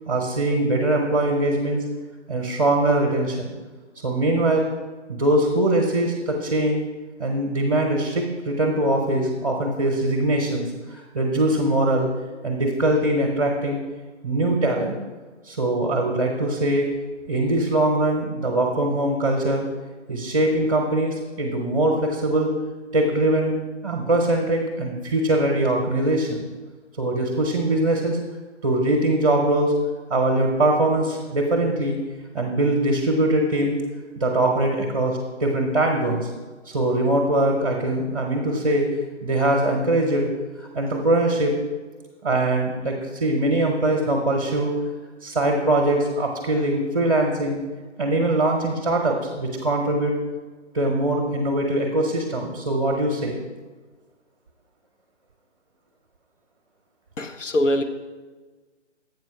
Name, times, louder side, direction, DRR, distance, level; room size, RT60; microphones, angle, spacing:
voice 1, 0.1-1.8 2.3-3.6 4.0-4.7 5.1-6.8 7.2-12.1 12.4-13.8 14.2-15.0 15.4-16.8 17.3-19.6 20.1-22.6 22.9-23.6 23.8-26.4 27.0-28.2 28.6-29.7 30.1-32.0 32.3-33.7 34.2-36.3 36.7-38.9 39.2-40.3 40.6-41.6 42.2-44.8 45.2-47.6 48.0-50.2 50.7-53.4, right 1 dB, 30° right, 0 dB, 0.8 m, -22 dB
voice 2, 57.2-57.8, left 1 dB, 85° left, 6 dB, 0.8 m, -22 dB
8.1 x 4.6 x 5.8 m, 1.3 s
figure-of-eight pair, 150°, 36 cm